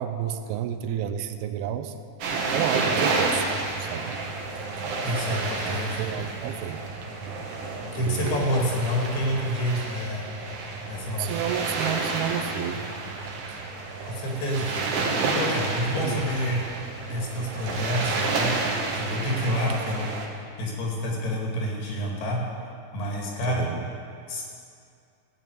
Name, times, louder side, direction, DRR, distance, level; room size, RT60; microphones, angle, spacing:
voice 1, 0.0-1.9 2.5-3.5 3.8-4.2 5.6-6.8 8.0-8.6 11.2-12.8 13.5-13.6 16.0-16.2 23.5-23.8, right 10 dB, 80° right, 8 dB, 2.5 m, -31 dB
sound 1, 2.2-20.3, right 3 dB, 65° right, 2.4 m, -30 dB
sound 2, 2.7-19.4, right 3 dB, 10° left, 2.0 m, -41 dB
voice 2, 5.0-6.0 7.9-10.2 10.9-11.3 14.1-14.8 15.3-16.6 17.1-18.5 18.9-20.1 20.6-22.4 22.9-23.7 24.3-24.4, equal, 80° left, -2 dB, 4.2 m, -28 dB
15.5 x 5.7 x 9.2 m, 2.4 s
omnidirectional pair, 4.5 m